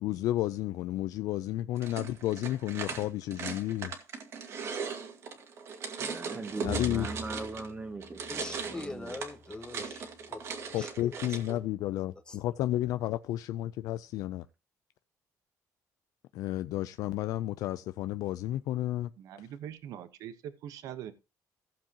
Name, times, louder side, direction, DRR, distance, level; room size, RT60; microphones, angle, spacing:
voice 1, 0.0-3.9 6.6-7.1 10.7-14.4 16.3-19.1, left 14 dB, 75° left, 0.4 m, -32 dB
sound 1, 1.8-7.7 8.0-11.5, right 5 dB, 45° right, 1.9 m, -39 dB
voice 2, 6.0-9.1, right 3 dB, 20° right, 0.9 m, -40 dB
Bowed string instrument, 6.6-10.1, left 3 dB, 55° left, 2.3 m, -44 dB
voice 3, 8.3-10.4 10.8-11.1 11.5-11.6 12.3-12.4, left 3 dB, 15° left, 1.3 m, -43 dB
voice 4, 19.2-21.1, right 10 dB, 70° right, 1.0 m, -42 dB
15.0 x 7.4 x 2.9 m
cardioid pair, 155°, 6 cm